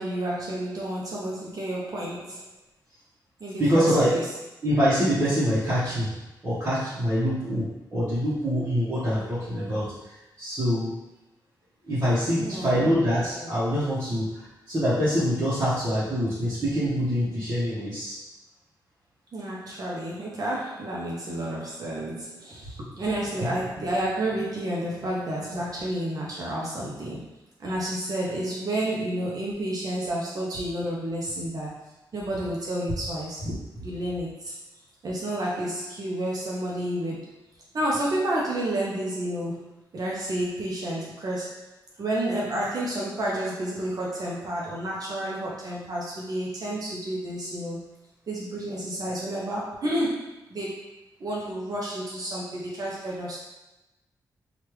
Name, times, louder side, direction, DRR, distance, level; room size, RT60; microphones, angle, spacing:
voice 1, 0.0-2.5 3.4-4.3 12.4-13.0 13.3-13.5 19.3-27.2 27.6-31.8 32.1-33.5 33.8-34.5 35.0-37.4 37.7-41.7 42.0-47.8 48.3-50.8 51.2-53.4, right 1 dB, 55° right, -5 dB, 0.6 m, -30 dB
voice 2, 3.6-4.1 4.6-6.1 6.4-9.9 10.4-11.0 11.9-18.2 33.4-33.5, equal, 30° right, -12 dB, 1.0 m, -25 dB
3.2 x 2.4 x 3.1 m, 1.0 s
cardioid pair, 90°, 8 cm